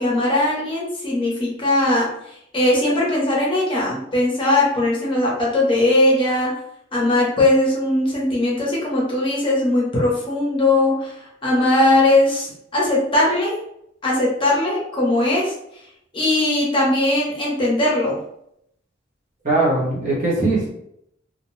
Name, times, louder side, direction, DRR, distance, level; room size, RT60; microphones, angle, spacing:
voice 1, 0.0-2.1 2.5-6.5 6.9-11.1 11.4-13.6 14.0-15.5 16.1-18.2, left 1 dB, 30° left, -4 dB, 0.8 m, -19 dB
voice 2, 19.4-20.7, right 2 dB, 40° right, -5 dB, 1.0 m, -20 dB
2.5 x 2.1 x 3.1 m, 0.75 s
head